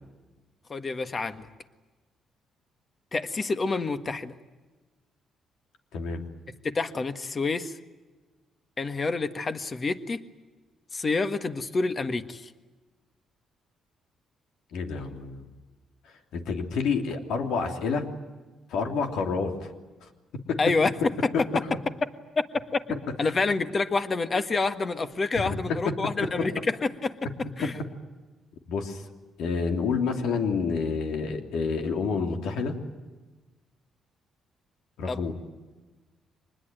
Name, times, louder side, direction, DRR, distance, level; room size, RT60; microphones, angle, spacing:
voice 1, 0.7-1.5 3.1-4.3 6.6-7.8 8.8-10.2 10.9-12.5 20.6-20.9 21.2-21.3 22.7-27.2 27.6-27.7 35.1-35.3, left 3 dB, 35° left, 9 dB, 1.6 m, -28 dB
voice 2, 14.7-15.4 16.3-18.1 18.7-19.7 20.5-20.6 25.3-25.6 28.7-29.0 29.4-32.7 35.0-35.3, left 5 dB, 80° left, 4 dB, 3.1 m, -28 dB
25.0 x 20.5 x 9.2 m, 1.3 s
cardioid pair, 90°, 0 cm